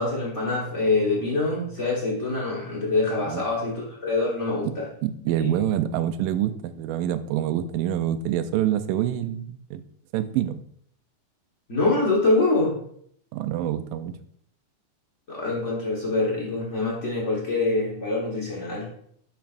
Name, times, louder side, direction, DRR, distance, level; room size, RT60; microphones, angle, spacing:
voice 1, 0.0-4.8 5.4-5.5 11.7-12.8 15.3-18.9, left 2 dB, 90° left, -5 dB, 0.6 m, -25 dB
voice 2, 5.0-9.8 10.1-10.6 13.3-14.1, right 11 dB, 85° right, 11 dB, 2.2 m, -26 dB
10.5 x 5.8 x 2.5 m, 0.67 s
omnidirectional pair, 3.8 m